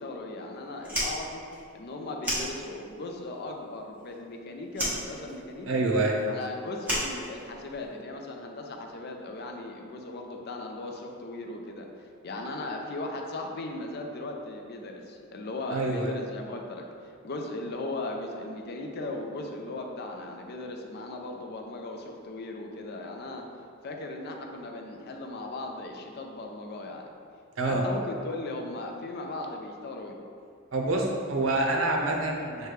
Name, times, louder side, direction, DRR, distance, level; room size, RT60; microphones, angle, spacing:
voice 1, 0.0-1.4 1.7-5.8 6.3-23.4 23.8-27.1 27.6-30.2, left 2 dB, 50° left, 2 dB, 0.4 m, -37 dB
Fire, 0.8-3.1 3.4-4.4 4.7-7.9, equal, 10° right, 1.0 m, -33 dB
voice 2, 5.7-6.2 15.7-16.1 27.6-27.8 30.7-32.7, right 2 dB, 70° right, 1 dB, 0.6 m, -26 dB
6.2 x 2.2 x 3.2 m, 2.4 s
head